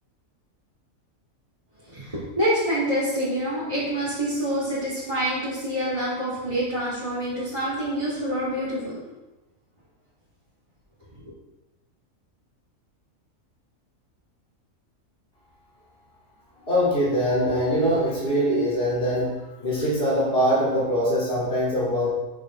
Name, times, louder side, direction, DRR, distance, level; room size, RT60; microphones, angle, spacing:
voice 1, 1.9-9.0, equal, 20° right, -11 dB, 3.3 m, -26 dB
voice 2, 16.6-19.3 19.6-22.1, equal, 40° left, -7 dB, 3.9 m, -23 dB
11.0 x 9.5 x 3.9 m, 1.0 s
omnidirectional pair, 1.4 m